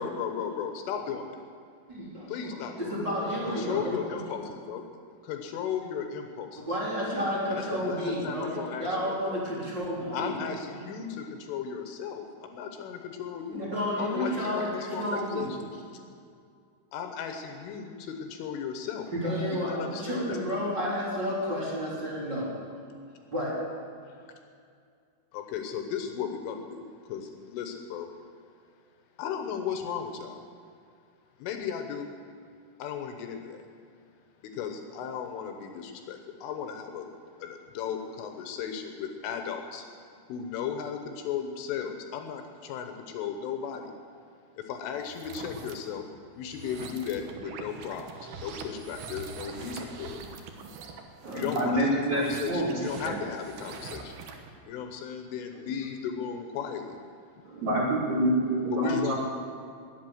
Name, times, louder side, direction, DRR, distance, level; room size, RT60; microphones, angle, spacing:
voice 1, 0.0-1.4 2.3-4.8 5.2-6.8 7.5-9.4 10.1-13.6 14.0-15.6 16.9-19.1 19.5-20.4 25.3-28.1 29.2-30.4 31.4-32.1 32.8-33.6 34.4-37.1 37.4-39.9 40.3-43.9 44.6-46.1 46.4-48.1 48.4-50.2 51.3-54.1 54.7-57.0 58.7-59.2, left 7 dB, 75° left, 5 dB, 3.4 m, -35 dB
voice 2, 1.9-2.3 2.8-4.2 6.6-10.3 10.8-10.9 13.5-15.5 19.1-22.5 23.3-23.5, equal, 25° right, -7 dB, 3.4 m, -31 dB
sound 1, 45.0-45.7 46.4-54.5, right 5 dB, 70° right, 2.4 m, -43 dB
voice 3, 51.2-53.2 57.4-59.2, right 1 dB, 45° right, -5 dB, 3.2 m, -27 dB
21.0 x 8.3 x 7.8 m, 2.3 s
omnidirectional pair, 5.9 m